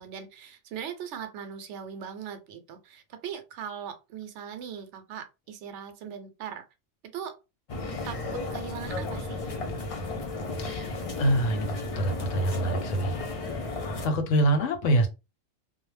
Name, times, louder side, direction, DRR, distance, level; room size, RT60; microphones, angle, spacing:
voice 1, 0.0-6.6 7.0-7.4 8.1-9.5, right 8 dB, 70° right, 0.9 m, -40 dB
sound 1, 7.7-14.1, left 2 dB, 50° left, 0.4 m, -34 dB
voice 2, 11.2-11.7 12.0-13.2 14.0-15.1, right 1 dB, 85° left, 1.0 m, -24 dB
2.3 x 2.0 x 3.2 m
omnidirectional pair, 1.3 m